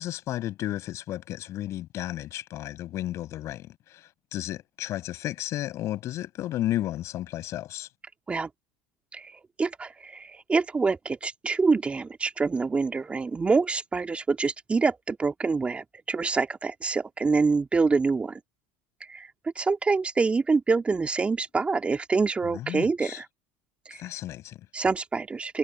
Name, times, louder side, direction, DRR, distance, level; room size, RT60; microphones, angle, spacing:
voice 1, 0.0-7.9 22.4-23.2 23.9-24.6, left 14 dB, 50° left, 6.7 m, -33 dB
voice 2, 9.1-18.4 19.1-23.3 23.9-24.0 24.7-25.6, right 4 dB, 20° right, 2.3 m, -26 dB
hypercardioid pair, 95°, 6 cm